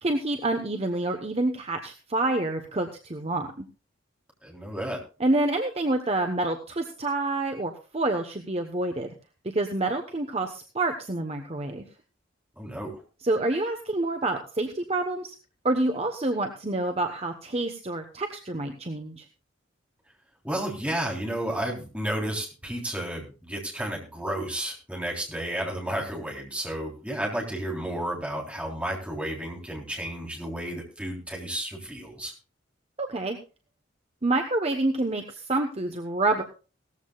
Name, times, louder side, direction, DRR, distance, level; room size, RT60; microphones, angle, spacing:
voice 1, 0.0-3.6 5.2-9.1 9.5-11.8 13.2-15.3 15.6-19.2 33.0-33.4 34.2-36.4, right 2 dB, 30° right, 5 dB, 1.0 m, -27 dB
voice 2, 4.4-5.0 12.6-12.9 20.4-32.3, right 1 dB, 5° right, -1 dB, 3.5 m, -32 dB
18.0 x 14.0 x 2.4 m, 0.33 s
head